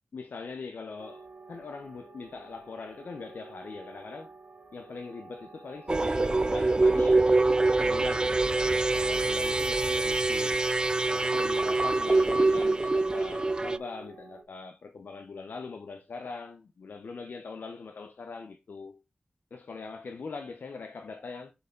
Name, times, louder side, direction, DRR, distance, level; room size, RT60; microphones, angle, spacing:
voice 1, 0.1-4.3 4.7-7.3 7.8-10.6 11.1-19.0 19.5-21.5, left 4 dB, 85° left, 0.7 m, -41 dB
sound 1, 1.0-14.4, right 4 dB, 80° right, 1.8 m, -51 dB
sound 2, 5.9-13.8, right 2 dB, 25° right, 0.3 m, -25 dB
6.6 x 4.5 x 3.8 m
wide cardioid pair, 90°, 3 cm